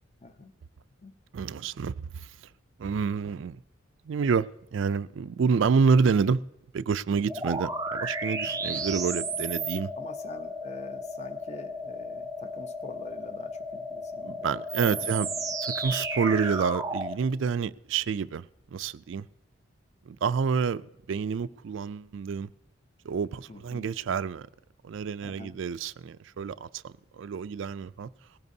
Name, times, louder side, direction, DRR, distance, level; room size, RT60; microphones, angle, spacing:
voice 1, 0.2-0.5 1.0-1.1 7.3-7.4 8.5-8.6 10.0-14.5 14.8-15.2 23.5-23.9 25.2-25.6, left 2 dB, 35° left, 0.8 m, -46 dB
voice 2, 1.3-2.3 2.8-3.6 4.1-6.4 6.7-9.9 14.2-15.3 15.6-18.5 18.7-19.3 20.1-22.5 23.0-24.5 24.8-28.1, right 5 dB, 65° right, 0.4 m, -28 dB
sound 1, 7.3-17.2, right 2 dB, 15° right, 0.5 m, -33 dB
19.5 x 16.0 x 2.7 m
head